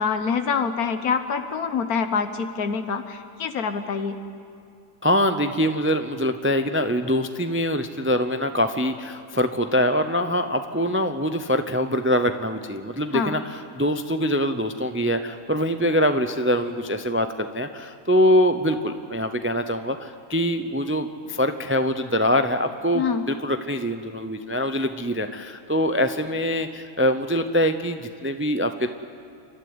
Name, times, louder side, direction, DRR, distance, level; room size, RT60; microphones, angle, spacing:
voice 1, 0.0-4.2 13.1-13.3 22.9-23.3, left 6 dB, 80° left, 8 dB, 1.5 m, -25 dB
voice 2, 5.0-28.9, equal, 15° right, 8 dB, 0.4 m, -24 dB
28.5 x 12.5 x 9.6 m, 2.5 s
omnidirectional pair, 1.5 m